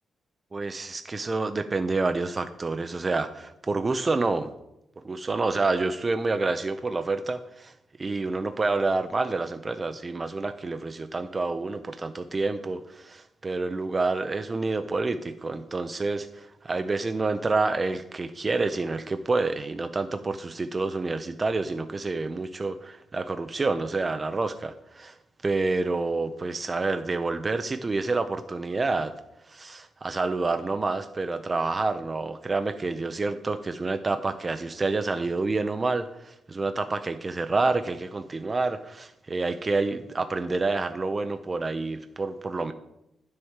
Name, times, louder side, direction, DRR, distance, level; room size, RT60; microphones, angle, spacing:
voice 1, 0.5-4.5 5.0-25.2 25.4-29.1 29.5-42.7, right 3 dB, 25° right, 9 dB, 0.4 m, -28 dB
10.0 x 6.3 x 4.6 m, 0.85 s
cardioid pair, 135°, 0 cm